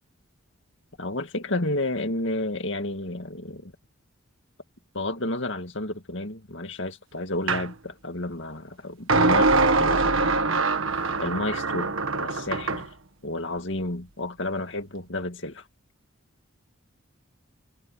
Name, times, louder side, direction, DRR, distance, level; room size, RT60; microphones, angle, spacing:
voice 1, 1.0-3.7 4.9-10.3 11.2-12.9 13.2-15.6, left 2 dB, 60° left, 2.3 m, -31 dB
sound 1, 7.5-7.7 9.1-12.9, right 3 dB, 70° right, 1.6 m, -23 dB
head